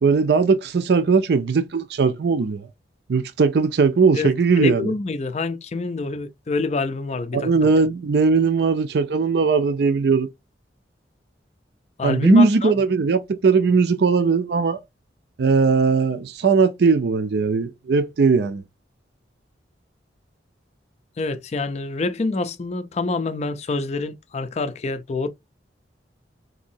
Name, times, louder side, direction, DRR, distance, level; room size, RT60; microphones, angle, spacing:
voice 1, 0.0-2.7 3.1-4.9 7.3-10.3 12.0-14.8 15.4-18.6, right 4 dB, 60° right, 0.4 m, -19 dB
voice 2, 4.1-7.7 12.0-12.7 21.2-25.3, left 3 dB, 35° left, 0.4 m, -26 dB
3.9 x 2.7 x 2.6 m
head